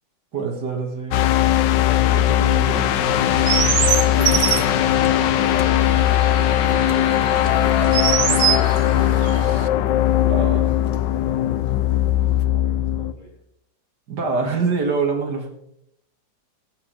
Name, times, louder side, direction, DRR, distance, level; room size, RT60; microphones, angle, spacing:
voice 1, 0.3-1.2 2.1-3.8 4.1-4.4 10.2-10.6 14.1-15.5, right 4 dB, 65° right, 2 dB, 2.5 m, -26 dB
sound 1, 1.1-13.1, left 12 dB, 85° left, 1.3 m, -19 dB
Chirp tweet, 3.0-9.7, right 10 dB, 85° right, 0.6 m, -25 dB
sound 2, 7.3-11.2 11.5-12.0 12.4-12.5, left 10 dB, 60° left, 1.2 m, -33 dB
voice 2, 10.3-10.7 11.2-13.4, equal, 30° left, -6 dB, 4.8 m, -43 dB
22.5 x 7.6 x 3.4 m, 0.77 s
omnidirectional pair, 1.9 m